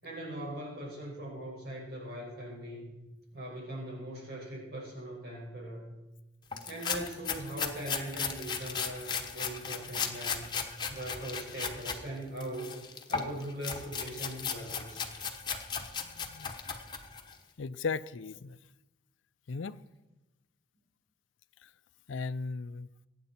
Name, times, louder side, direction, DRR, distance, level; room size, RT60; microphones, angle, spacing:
voice 1, 0.0-3.0 3.3-5.9 6.6-10.5 10.9-12.8 13.1-15.0, right 1 dB, 55° right, 5.6 m, -40 dB
sound 1, 6.5-12.0 12.4-17.3, left 6 dB, 25° left, 1.1 m, -36 dB
voice 2, 16.0-16.5 17.6-18.6 19.5-19.8 21.6-21.7 22.1-22.9, left 4 dB, 90° left, 0.5 m, -37 dB
23.0 x 9.4 x 4.4 m
head